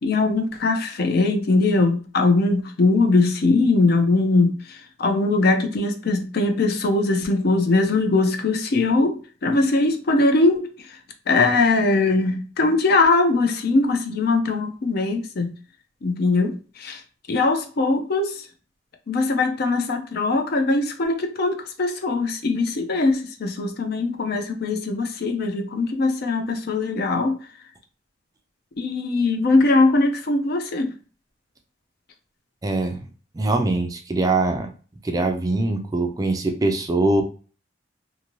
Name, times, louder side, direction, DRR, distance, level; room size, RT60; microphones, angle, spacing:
voice 1, 0.0-11.0 11.3-15.5 16.0-17.0 17.3-18.5 19.1-27.4 28.8-30.9, left 3 dB, 55° left, 5 dB, 0.5 m, -21 dB
voice 2, 32.6-33.0 33.3-34.7 35.0-37.2, right 2 dB, 20° right, 5 dB, 0.3 m, -22 dB
2.6 x 2.6 x 2.9 m, 0.38 s
head